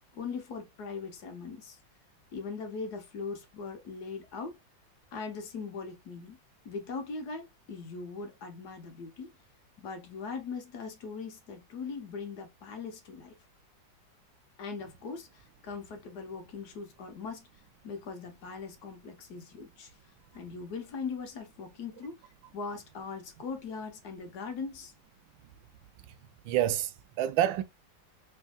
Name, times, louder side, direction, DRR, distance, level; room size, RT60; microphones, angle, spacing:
voice 1, 0.1-1.8 2.3-4.5 5.1-6.4 6.6-9.3 9.8-13.3 14.6-17.5 17.8-19.9 20.3-22.2 22.5-24.9, left 5 dB, 60° left, 1.4 m, -40 dB
voice 2, 26.4-27.6, right 11 dB, 80° right, 1.3 m, -28 dB
4.5 x 3.3 x 2.3 m
omnidirectional pair, 2.1 m